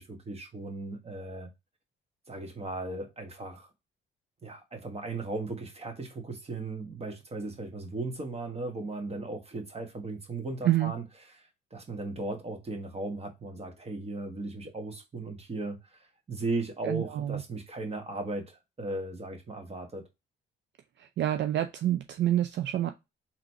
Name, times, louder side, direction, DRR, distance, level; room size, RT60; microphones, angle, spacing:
voice 1, 0.0-1.5 2.3-3.7 4.4-11.0 11.7-20.1, right 2 dB, 30° right, 1.5 m, -37 dB
voice 2, 16.8-17.4 21.0-22.9, right 12 dB, 65° right, 0.5 m, -27 dB
3.8 x 3.0 x 4.6 m
cardioid pair, 90°, 20 cm